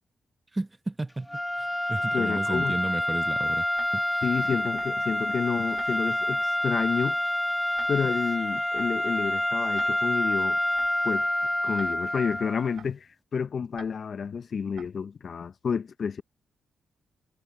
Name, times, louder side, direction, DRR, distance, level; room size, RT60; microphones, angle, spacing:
voice 1, 0.5-1.3 1.6-3.7 3.9-4.2, right 2 dB, 20° right, 1.0 m, -33 dB
sound 1, 1.3-12.8, left 1 dB, 10° left, 1.6 m, -27 dB
voice 2, 2.1-2.8 4.2-7.2 7.9-10.6 11.0-11.3 11.6-16.2, left 6 dB, 60° left, 0.9 m, -30 dB
Tick-tock, 3.7-3.9 4.7-4.9 5.7-5.9 6.7-6.9 7.7-7.9 8.7-8.9 9.7-9.9 10.7-10.9 11.7-11.9 12.7-12.9 13.7-13.9 14.7-14.9, right 9 dB, 75° right, 3.7 m, -45 dB
supercardioid pair, 50°, 0 cm